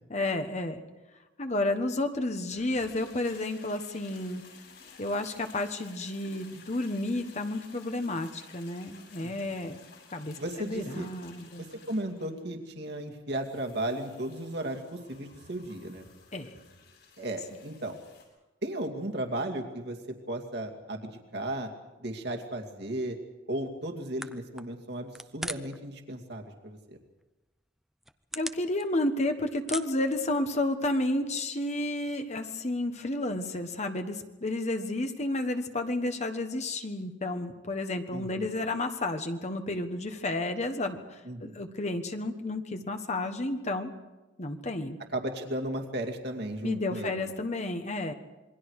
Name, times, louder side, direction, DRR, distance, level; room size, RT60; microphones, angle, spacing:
voice 1, 0.1-0.8 1.4-4.4 5.0-9.8 10.1-11.7 16.3-16.5 28.3-43.9 44.4-45.0 46.6-48.1, left 2 dB, 40° left, 6 dB, 1.4 m, -31 dB
sound 1, 2.5-18.3, left 5 dB, 65° left, 7.7 m, -54 dB
voice 2, 9.2-9.6 10.4-11.1 11.6-16.0 17.2-18.0 18.6-21.7 22.0-23.2 23.5-27.0 38.1-38.5 41.2-41.6 45.1-47.3, right 1 dB, 65° right, 2 dB, 2.5 m, -35 dB
sound 2, 24.2-25.9 26.1-26.7 27.2-27.3 27.8-29.2 29.5-30.8, right 1 dB, ahead, 0.7 m, -40 dB
27.5 x 22.5 x 4.9 m, 1.1 s
head